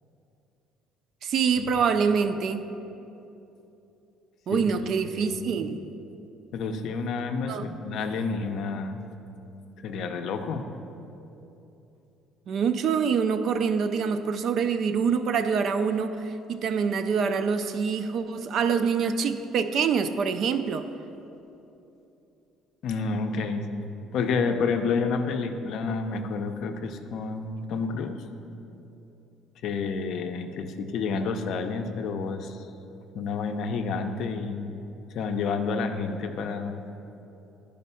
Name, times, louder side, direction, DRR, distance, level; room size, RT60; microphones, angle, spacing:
voice 1, 1.2-2.6 4.5-5.8 7.5-7.7 12.5-20.8, right 6 dB, 40° right, 10 dB, 0.4 m, -25 dB
voice 2, 5.1-5.5 6.5-9.0 9.8-10.7 22.8-28.2 29.6-32.6 33.1-34.7 35.1-36.8, left 4 dB, 50° left, 7 dB, 0.5 m, -29 dB
11.0 x 5.2 x 5.5 m, 2.9 s
cardioid pair, 175°, 0 cm